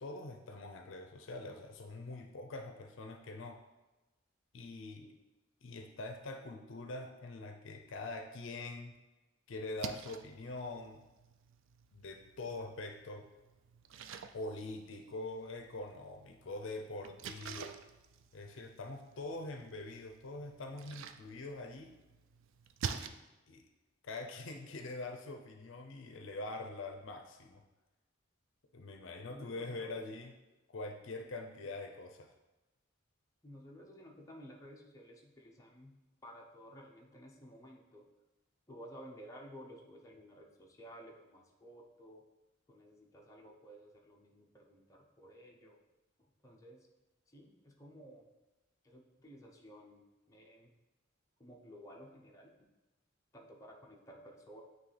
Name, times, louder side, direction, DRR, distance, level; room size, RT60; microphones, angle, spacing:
voice 1, 0.0-3.6 4.5-5.1 5.6-8.9 9.5-11.0 11.9-13.3 14.3-17.8 18.3-21.9 22.8-23.2 23.5-23.6 24.0-27.6 28.7-30.3 30.7-32.3, left 2 dB, 65° left, 4 dB, 0.5 m, -44 dB
Splash splatter, 9.6-23.1, right 6 dB, 70° right, 0.3 m, -49 dB
voice 2, 29.3-30.3 33.4-35.9 36.2-38.0 38.7-42.2 42.7-45.8 46.2-46.9 47.3-48.3 48.8-50.7 51.4-52.5 53.3-54.6, equal, 15° left, -2 dB, 0.7 m, -54 dB
9.3 x 3.2 x 3.3 m, 1.1 s
head